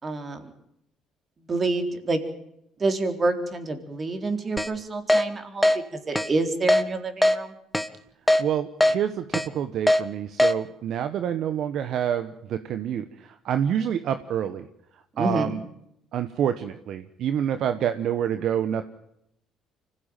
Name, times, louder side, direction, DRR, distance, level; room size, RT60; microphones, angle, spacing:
voice 1, 0.0-0.5 1.5-2.2 2.8-7.6 15.2-15.5, right 2 dB, 35° right, 6 dB, 3.9 m, -28 dB
Keyboard (musical), 4.6-4.7 5.1-5.2 5.6-5.8 6.2-6.3 6.7-6.8 7.2-7.4 7.7-7.9 8.3-8.4 8.8-8.9 9.3-9.5 9.9-10.0 10.4-10.5, left 1 dB, 5° left, 1.5 m, -19 dB
voice 2, 8.4-14.7 15.2-15.6 16.1-18.8, right 9 dB, 65° right, 10 dB, 1.1 m, -27 dB
25.0 x 16.0 x 9.1 m, 0.78 s
supercardioid pair, 65°, 0 cm